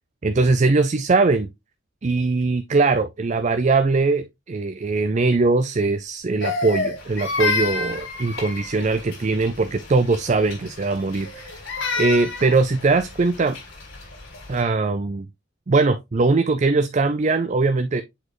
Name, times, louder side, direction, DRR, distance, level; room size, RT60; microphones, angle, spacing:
voice 1, 0.2-1.5 2.0-11.3 12.0-13.6 14.5-15.3 15.7-18.0, right 3 dB, 35° right, 0.4 m, -21 dB
Crying sobbing, 6.4-8.9 11.1-12.6, left 4 dB, 70° left, 1.9 m, -27 dB
sound 1, 6.9-14.6, left 3 dB, 85° left, 4.7 m, -42 dB
7.7 x 4.2 x 3.1 m
head